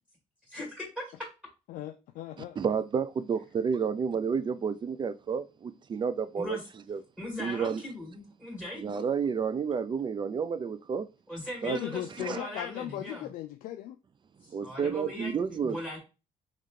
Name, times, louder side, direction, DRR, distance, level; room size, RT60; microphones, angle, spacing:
voice 1, 0.5-1.0 6.4-6.6 7.2-9.0 11.3-13.3 14.4-16.0, left 1 dB, 5° right, 1.9 m, -39 dB
voice 2, 1.7-2.7 11.7-14.0, left 13 dB, 75° left, 0.4 m, -38 dB
voice 3, 2.6-6.6 6.9-7.0 7.4-7.8 8.7-11.1 11.6-11.8 12.2-12.4 14.5-15.8, right 6 dB, 35° right, 0.4 m, -30 dB
3.6 x 3.2 x 3.7 m
cardioid pair, 100°, 15 cm